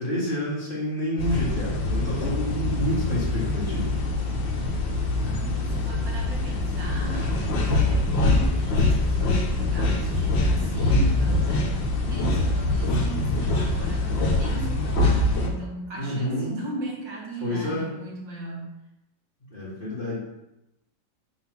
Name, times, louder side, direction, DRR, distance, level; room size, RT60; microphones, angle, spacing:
voice 1, 0.0-3.9 16.0-16.5 17.4-17.9 19.5-20.2, left 1 dB, 30° left, -7 dB, 2.0 m, -28 dB
sound 1, 1.2-15.5, left 2 dB, 75° left, 1.7 m, -24 dB
voice 2, 5.2-18.7, right 1 dB, 70° right, -3 dB, 2.3 m, -38 dB
5.6 x 3.9 x 5.8 m, 0.91 s
omnidirectional pair, 2.1 m